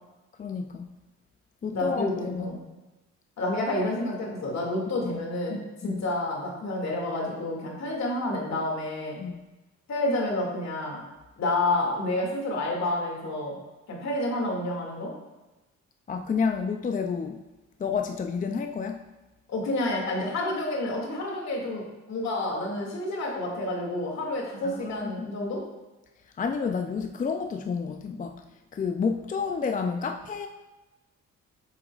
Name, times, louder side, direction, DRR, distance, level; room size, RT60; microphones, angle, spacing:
voice 1, 0.4-0.9 1.6-2.6 5.0-5.2 5.8-6.0 9.2-9.4 16.1-17.4 17.8-19.0 24.6-25.3 26.4-30.5, left 5 dB, 25° left, 6 dB, 0.4 m, -30 dB
voice 2, 1.7-2.6 3.4-9.2 9.9-11.0 11.4-13.6 13.9-15.1 19.5-21.8 22.1-25.6, left 2 dB, 60° left, -1 dB, 2.3 m, -29 dB
8.0 x 7.3 x 2.4 m, 1.1 s
cardioid pair, 90°, 30 cm